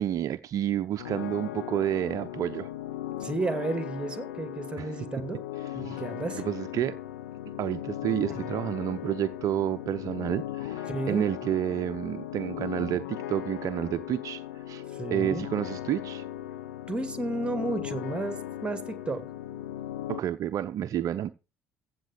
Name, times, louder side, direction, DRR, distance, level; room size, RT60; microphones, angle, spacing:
voice 1, 0.0-2.7 4.8-4.9 5.6-6.0 6.4-7.0 7.6-14.8 15.1-16.2 20.1-21.3, right 11 dB, 45° right, 0.6 m, -30 dB
sound 1, 1.0-20.2, left 12 dB, 75° left, 1.0 m, -37 dB
voice 2, 3.2-5.4 5.8-6.4 8.3-8.5 10.9-11.2 14.9-15.4 16.9-19.2, right 2 dB, 15° right, 2.2 m, -32 dB
15.5 x 7.9 x 5.0 m
figure-of-eight pair, 55°, 8 cm